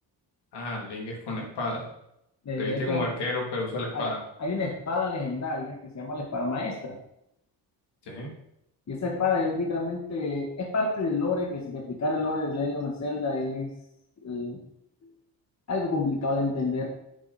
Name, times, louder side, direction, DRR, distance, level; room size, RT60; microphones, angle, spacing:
voice 1, 0.5-1.8 2.6-4.2 8.1-8.3, left 2 dB, 75° left, -1 dB, 2.9 m, -31 dB
voice 2, 2.4-3.1 3.9-4.1 4.4-7.0 8.9-13.7 14.2-14.6 15.7-16.9, left 3 dB, 40° left, 0 dB, 1.5 m, -29 dB
7.2 x 7.1 x 4.2 m, 0.80 s
cardioid pair, 90°, 42 cm